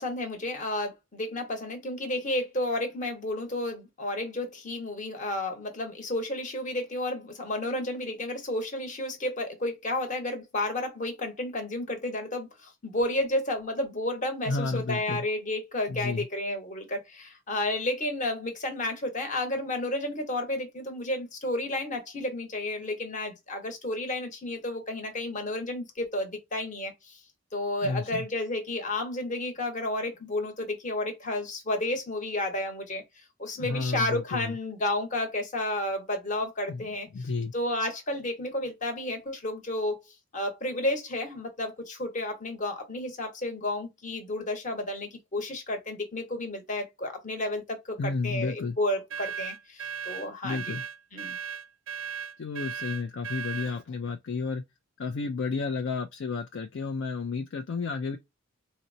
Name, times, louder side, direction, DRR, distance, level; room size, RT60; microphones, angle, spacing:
voice 1, 0.0-27.2 27.5-33.0 33.4-40.0 40.3-50.8 51.1-51.4, left 1 dB, 35° left, 1.0 m, -32 dB
voice 2, 14.5-15.2 15.9-16.2 27.8-28.2 33.6-34.6 36.7-36.9 37.1-37.5 48.0-48.8 50.4-50.8 52.4-54.6 55.0-58.2, left 4 dB, 60° left, 0.4 m, -31 dB
sound 1, 49.1-53.8, right 7 dB, 65° right, 0.5 m, -36 dB
4.1 x 2.1 x 2.6 m
head